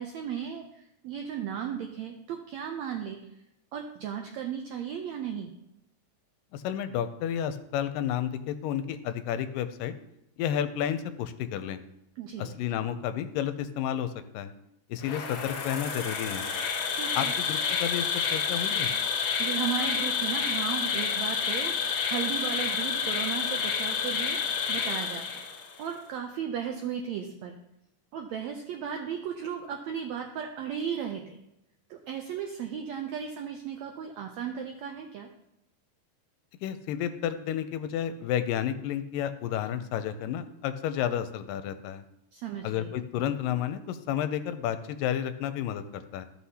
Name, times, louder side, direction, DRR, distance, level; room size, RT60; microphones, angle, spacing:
voice 1, 0.0-3.3 3.7-5.5 12.2-12.8 16.9-17.3 19.4-27.6 28.1-31.4 31.9-35.3 42.3-42.9, right 8 dB, 90° right, 3 dB, 1.5 m, -35 dB
voice 2, 6.5-9.9 10.4-11.8 12.4-14.5 14.9-16.5 17.2-18.9 36.6-42.0 42.6-46.2, left 10 dB, 85° left, 11 dB, 2.2 m, -31 dB
Insect, 15.0-25.8, left 6 dB, 60° left, 1.9 m, -29 dB
14.0 x 5.9 x 2.8 m, 0.82 s
omnidirectional pair, 3.9 m